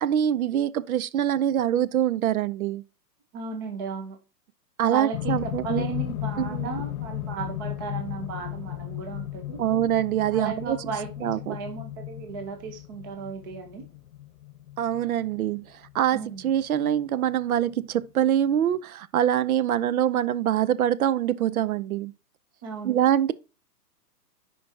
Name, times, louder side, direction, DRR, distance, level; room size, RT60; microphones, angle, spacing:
voice 1, 0.0-2.8 4.8-5.8 6.4-6.7 9.6-10.8 11.2-11.6 14.8-15.7 15.9-16.2 16.4-22.1 22.8-23.3, right 10 dB, 60° right, 0.6 m, -24 dB
voice 2, 3.3-4.2 4.9-9.6 10.3-13.8 16.1-16.5 22.6-23.0, right 5 dB, 15° right, 0.5 m, -35 dB
sound 1, 5.1-17.3 18.2-18.3, left 15 dB, 60° left, 0.6 m, -35 dB
10.0 x 4.6 x 2.8 m
hypercardioid pair, 145°, 48 cm